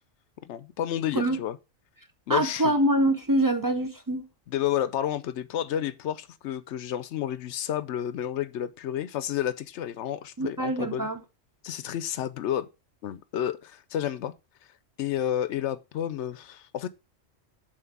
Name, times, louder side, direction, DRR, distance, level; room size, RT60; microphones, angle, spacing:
voice 1, 0.4-1.6 2.3-2.7 4.5-11.1 11.6-12.7 13.0-14.3 15.0-16.9, left 10 dB, 70° left, 0.8 m, -30 dB
voice 2, 2.3-4.3 10.4-11.2, right 1 dB, 25° right, 0.4 m, -25 dB
7.4 x 3.1 x 5.9 m
omnidirectional pair, 1.3 m